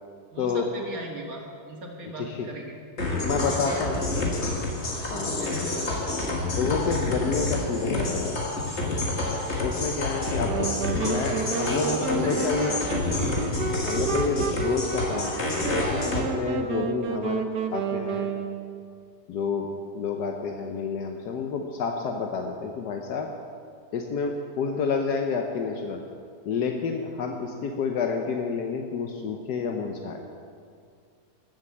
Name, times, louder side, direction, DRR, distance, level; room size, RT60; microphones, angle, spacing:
voice 1, 0.3-2.8 3.3-4.3 5.1-6.2 11.0-13.0, right 1 dB, 60° right, 0 dB, 2.4 m, -38 dB
voice 2, 2.2-2.5 3.2-4.0 5.1-5.5 6.6-8.4 8.8-9.0 9.5-10.7 10.9-12.8 13.8-17.4 17.7-18.3 19.3-23.3 23.9-26.0 26.4-30.2, left 5 dB, 80° left, 3 dB, 1.4 m, -29 dB
sound 1, 3.0-16.2, left 2 dB, 40° left, 2.0 m, -28 dB
sound 2, 10.4-18.9, right 6 dB, 80° right, 1.5 m, -31 dB
14.0 x 7.7 x 7.3 m, 2.3 s
omnidirectional pair, 1.7 m